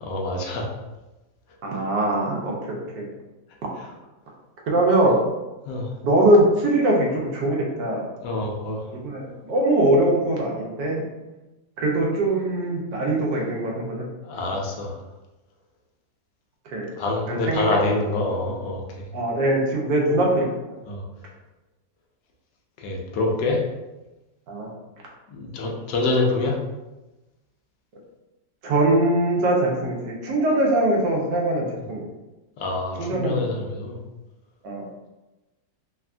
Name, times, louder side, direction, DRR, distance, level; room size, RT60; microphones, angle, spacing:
voice 1, 0.0-0.6 5.7-5.9 8.2-8.8 14.2-15.0 17.0-19.1 20.9-21.0 22.8-23.6 25.3-26.6 32.6-34.0, left 2 dB, 80° left, 0 dB, 1.2 m, -26 dB
voice 2, 1.6-3.1 4.7-5.2 6.0-8.1 8.9-11.0 11.8-14.0 16.7-16.9 17.3-17.7 19.1-20.7 24.5-24.7 28.6-32.1 33.0-33.4 34.6-34.8, right 1 dB, 75° right, -2 dB, 1.3 m, -22 dB
3.5 x 2.2 x 2.4 m, 1.1 s
omnidirectional pair, 1.9 m